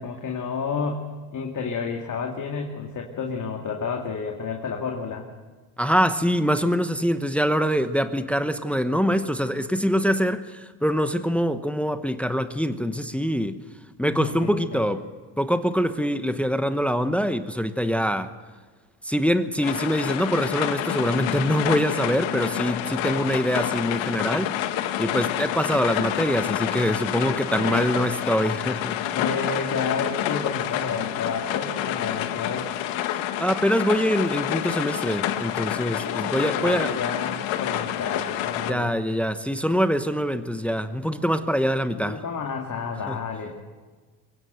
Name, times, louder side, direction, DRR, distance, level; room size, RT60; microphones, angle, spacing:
voice 1, 0.0-5.3 14.0-14.8 22.9-23.2 27.5-27.8 29.1-32.7 36.0-38.9 42.0-43.6, left 5 dB, 40° left, 2.4 m, -31 dB
voice 2, 5.8-13.6 14.0-15.1 15.4-18.4 19.0-29.0 33.4-37.0 38.7-42.2 43.1-43.2, equal, 5° left, 1.0 m, -24 dB
sound 1, 19.6-38.7, left 11 dB, 75° left, 1.7 m, -28 dB
23.0 x 17.0 x 8.0 m
supercardioid pair, 95°, 47 cm